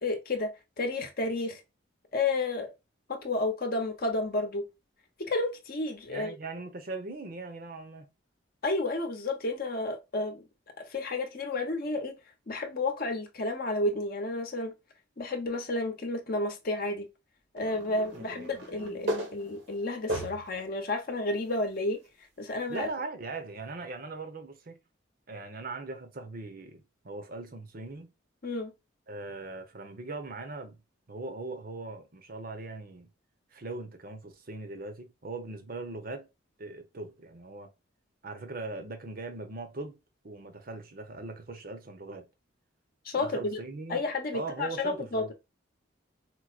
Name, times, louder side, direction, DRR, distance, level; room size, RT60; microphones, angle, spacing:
voice 1, 0.0-1.6 2.1-2.7 3.1-4.7 5.2-6.3 8.6-10.4 10.8-12.2 12.5-14.7 15.2-17.1 17.5-22.0 22.4-22.9 28.4-28.7 43.0-43.6 43.9-45.3, left 2 dB, 50° left, 0.8 m, -31 dB
voice 2, 6.1-8.1 18.1-18.5 22.7-24.8 25.3-28.1 29.1-30.8 31.1-33.1 33.5-36.3 36.6-37.7 38.2-40.0 40.2-42.3 43.2-44.0 44.3-45.3, right 3 dB, 50° right, 0.8 m, -40 dB
sound 1, 17.6-20.6 21.2-21.3 22.8-22.9, equal, 80° right, 1.3 m, -37 dB
4.6 x 2.1 x 2.4 m
head